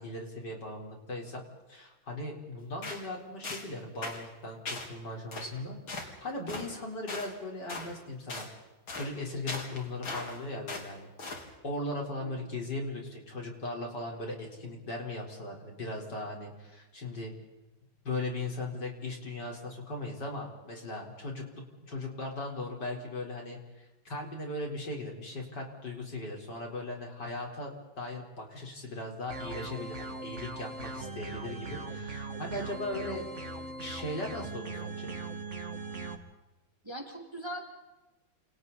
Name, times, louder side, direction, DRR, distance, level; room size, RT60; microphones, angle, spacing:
voice 1, 0.0-1.4 1.7-8.5 9.0-11.1 11.6-17.3 18.0-21.5 21.8-27.7 28.0-33.3 33.8-35.1, left 2 dB, 55° left, 0 dB, 5.0 m, -38 dB
sound 1, 2.8-3.1 3.4-3.7 4.0-4.2 4.7-4.9 5.3-5.5 5.9-6.1 6.5-6.7 7.1-7.3 7.7-7.9 8.3-8.5 8.9-9.1 9.5-10.4 10.7-10.9 11.2-11.5, left 3 dB, 75° left, 4.4 m, -38 dB
voice 2, 12.2-12.5 36.8-37.6, equal, 10° right, 1 dB, 3.1 m, -40 dB
sound 2, 29.3-36.1, right 3 dB, 35° right, 2.5 m, -40 dB
30.0 x 28.5 x 4.2 m, 1.1 s
omnidirectional pair, 2.2 m